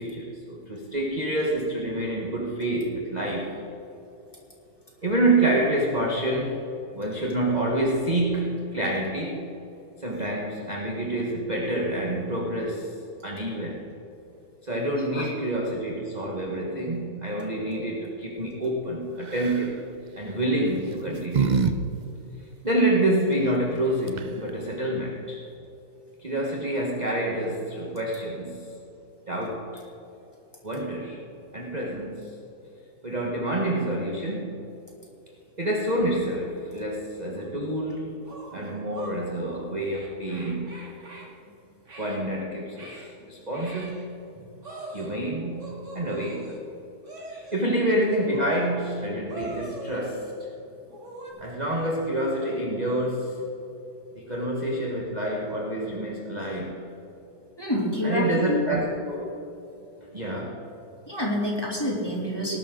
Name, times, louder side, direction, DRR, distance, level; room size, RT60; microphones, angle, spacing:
voice 1, 0.0-3.6 5.0-6.7 6.9-9.5 10.0-12.9 13.2-13.8 14.6-19.8 20.2-21.6 22.6-25.4 26.2-28.7 29.3-29.8 30.6-31.2 31.5-32.3 33.0-34.6 35.6-38.2 38.5-40.8 42.0-43.0 43.3-44.0 44.9-46.5 47.3-50.3 51.4-53.4 54.2-56.9 58.0-59.3 60.1-60.6, right 1 dB, 25° right, -2 dB, 1.4 m, -27 dB
sound 1, 19.3-19.7 20.6-21.7 22.0-22.1 23.8-23.9 24.1-24.5, right 5 dB, 85° right, 0.4 m, -26 dB
sound 2, 37.4-37.5 38.2-39.2 39.9-41.3 41.8-42.2 42.8-43.1 43.5-44.1 44.6-45.2 45.6-46.6 47.0-47.7 48.3-48.9 49.3-50.3 50.9-51.3, right 2 dB, 45° right, 3.2 m, -41 dB
voice 2, 57.6-58.7 61.1-62.6, left 1 dB, 15° left, -4 dB, 3.0 m, -28 dB
19.0 x 12.0 x 3.8 m, 2.9 s
omnidirectional pair, 1.8 m